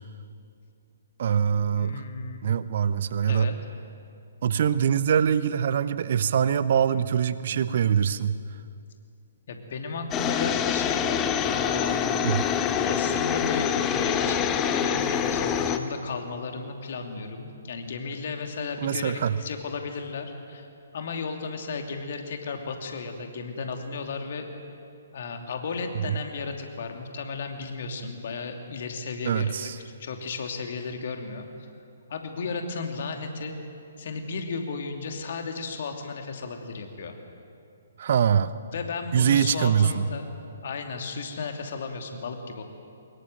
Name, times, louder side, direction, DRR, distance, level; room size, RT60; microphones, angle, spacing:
voice 1, 1.2-2.0 2.4-3.5 4.4-8.4 12.2-12.4 18.8-19.4 26.0-26.2 29.2-29.8 38.0-38.5 39.1-40.1, right 8 dB, 45° right, 15 dB, 0.9 m, -23 dB
voice 2, 1.7-2.4 3.3-3.5 9.5-12.3 12.8-20.7 20.9-24.5 25.1-29.7 30.0-31.7 32.1-33.6 34.0-37.2 38.7-40.3 40.6-42.6, left 4 dB, 50° left, 4 dB, 2.8 m, -34 dB
sound 1, 10.1-15.8, left 8 dB, 20° left, 1.1 m, -25 dB
24.0 x 21.5 x 7.9 m, 2.5 s
figure-of-eight pair, 125°, 0 cm